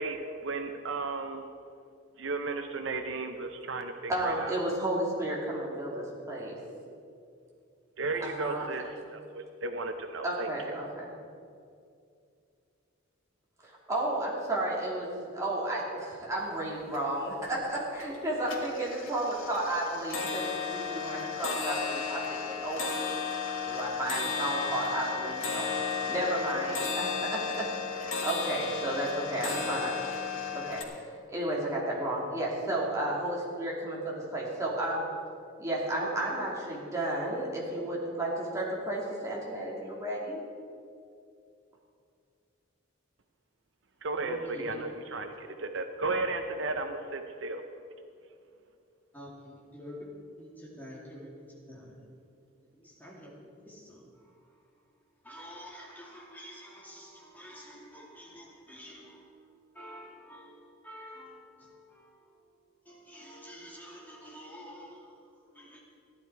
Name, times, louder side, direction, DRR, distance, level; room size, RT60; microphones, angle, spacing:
voice 1, 0.0-1.4 2.2-4.5 8.0-10.5 44.0-47.6, right 3 dB, 65° right, 6 dB, 0.7 m, -34 dB
voice 2, 4.1-6.5 8.2-8.7 10.2-11.1 13.6-23.2 23.6-30.0 30.5-35.1 35.6-40.4, right 1 dB, 15° right, -5 dB, 2.7 m, -33 dB
sound 1, 16.5-16.6 16.8-17.4 17.8-18.2 18.4-30.8, left 5 dB, 90° left, 1.9 m, -34 dB
voice 3, 44.3-44.9 49.1-50.1 50.4-52.0 52.7-53.3 53.6-54.1 55.2-59.4 59.7-62.2 62.9-65.2 65.5-65.8, equal, 10° left, -4 dB, 2.4 m, -48 dB
15.5 x 11.5 x 4.7 m, 2.4 s
head